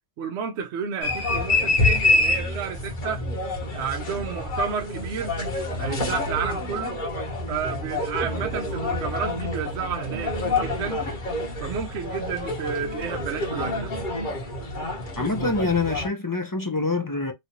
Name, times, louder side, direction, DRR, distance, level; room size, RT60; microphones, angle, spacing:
voice 1, 0.2-3.2 3.7-5.4 5.8-7.0 7.5-11.1 11.6-13.9, right 7 dB, 75° right, 0.9 m, -31 dB
sound 1, 1.0-16.1, left 2 dB, 45° left, 1.2 m, -27 dB
voice 2, 15.2-17.3, left 3 dB, 25° left, 0.5 m, -25 dB
3.2 x 2.5 x 2.9 m
omnidirectional pair, 1.2 m